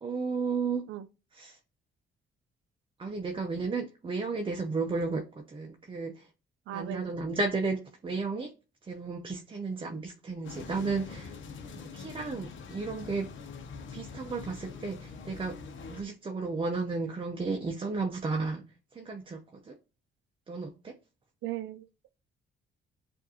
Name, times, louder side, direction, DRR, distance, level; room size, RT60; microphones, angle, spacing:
voice 1, 0.0-0.9 1.4-1.6 3.0-6.2 6.7-8.5 8.9-11.3 11.7-13.3 13.9-15.6 15.9-18.6 18.9-19.4 19.7-19.8 20.5-21.0, right 4 dB, 25° right, 0.6 m, -33 dB
voice 2, 6.7-7.2 21.4-21.9, right 13 dB, 80° right, 0.5 m, -37 dB
sound 1, 10.4-16.0, left 5 dB, 75° left, 0.8 m, -44 dB
7.2 x 2.6 x 2.7 m
cardioid pair, 90°, 20 cm